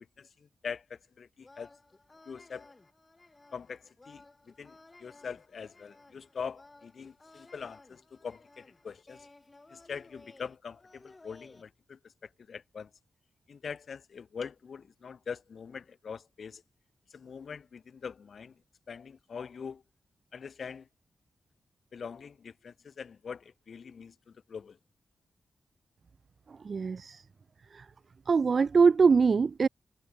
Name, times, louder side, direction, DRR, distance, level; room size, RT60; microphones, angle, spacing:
voice 1, 0.2-1.7 2.2-2.7 3.5-9.3 9.7-12.9 13.5-16.6 17.1-18.5 18.9-19.8 20.3-20.9 21.9-24.8, left 6 dB, 60° left, 1.3 m, -43 dB
sound 1, 1.4-11.6, left 2 dB, 25° left, 2.8 m, -57 dB
voice 2, 26.5-27.2 27.7-27.9 28.3-29.7, right 5 dB, 50° right, 0.5 m, -23 dB
wide cardioid pair, 100°, 0 cm